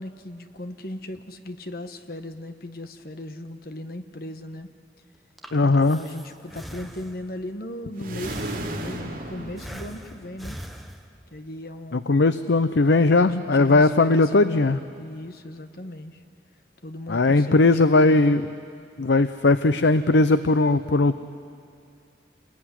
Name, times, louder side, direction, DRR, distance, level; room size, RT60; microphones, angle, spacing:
voice 1, 0.0-4.7 5.6-10.6 11.3-12.2 12.8-13.3 13.5-16.2 16.8-18.2, left 1 dB, 60° left, 8 dB, 1.4 m, -37 dB
Breathing, 5.1-7.4 8.2-9.1 9.6-11.4, equal, ahead, 1.2 m, -41 dB
voice 2, 5.5-6.0 11.9-14.8 17.1-18.5 19.0-21.2, left 3 dB, 90° left, 12 dB, 0.7 m, -19 dB
sound 1, 7.9-10.5, right 1 dB, 50° right, 3.5 m, -34 dB
28.5 x 21.0 x 9.9 m, 2.4 s
head